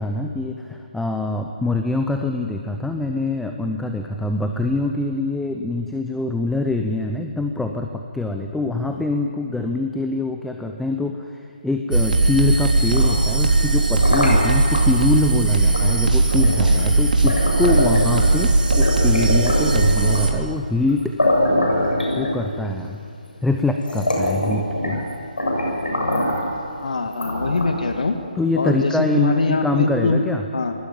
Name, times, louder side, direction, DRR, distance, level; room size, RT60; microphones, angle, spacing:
voice 1, 0.0-21.2 22.1-23.0 23.4-25.0 28.4-30.4, left 2 dB, ahead, 4 dB, 0.8 m, -24 dB
sound 1, 11.9-20.3, right 2 dB, 70° right, 3.7 m, -18 dB
sound 2, 12.8-14.8 15.7-15.9 16.3-18.4 18.7-20.4 20.9-21.0 21.2-22.7 23.3-23.4 23.8-25.1 25.4-26.5 27.1-27.9, left 1 dB, 75° left, 7.6 m, -23 dB
voice 2, 26.8-28.2 28.6-30.2 30.5-30.7, left 3 dB, 60° left, 6 dB, 1.9 m, -23 dB
25.5 x 20.0 x 8.9 m, 2.4 s
figure-of-eight pair, 145°, 5 cm